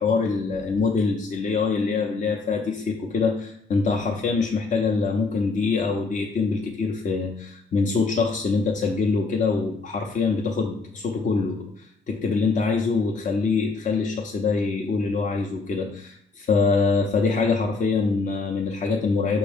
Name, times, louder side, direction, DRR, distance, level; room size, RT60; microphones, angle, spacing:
voice 1, 0.0-19.4, left 4 dB, 40° left, 0 dB, 0.6 m, -24 dB
6.1 x 2.2 x 3.3 m, 0.67 s
cardioid pair, 90°, 20 cm